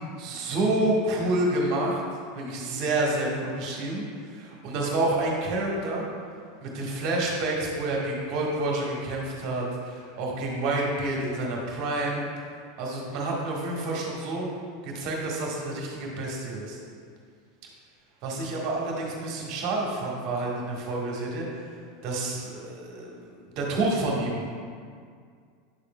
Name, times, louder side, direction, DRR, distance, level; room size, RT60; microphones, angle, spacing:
voice 1, 0.2-2.0 2.3-6.1 6.6-12.2 12.8-14.5 14.8-16.8 18.2-21.4 22.0-23.2 23.5-24.4, right 2 dB, 45° right, -2 dB, 1.6 m, -28 dB
9.7 x 6.8 x 2.4 m, 2.1 s
figure-of-eight pair, 80°, 0 cm